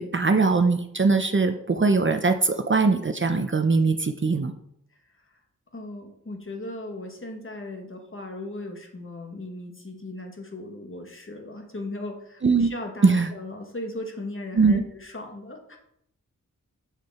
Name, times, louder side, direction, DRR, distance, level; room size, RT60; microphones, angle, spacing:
voice 1, 0.0-4.5 12.4-12.7 13.0-13.3 14.5-14.8, right 4 dB, 40° right, 7 dB, 0.6 m, -21 dB
voice 2, 5.7-15.8, left 2 dB, 40° left, 3 dB, 1.5 m, -37 dB
7.5 x 6.5 x 4.2 m, 0.74 s
wide cardioid pair, 90°, 32 cm